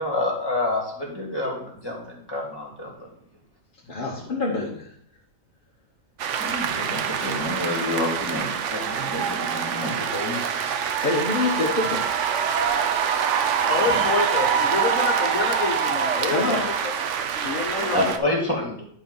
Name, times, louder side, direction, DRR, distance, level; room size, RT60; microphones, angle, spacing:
voice 1, 0.0-3.0 6.4-10.7 13.8-14.0 17.9-18.8, left 2 dB, 15° left, -1 dB, 2.3 m, -28 dB
voice 2, 3.9-4.9 10.6-10.8 11.0-12.3 16.3-16.7, left 3 dB, 40° left, -4 dB, 1.3 m, -26 dB
sound 1, 6.2-18.2, right 7 dB, 65° right, 1.0 m, -25 dB
voice 3, 13.7-16.5 17.4-18.1, left 4 dB, 70° left, 1 dB, 1.6 m, -27 dB
10.5 x 4.2 x 5.5 m, 0.64 s
omnidirectional pair, 1.5 m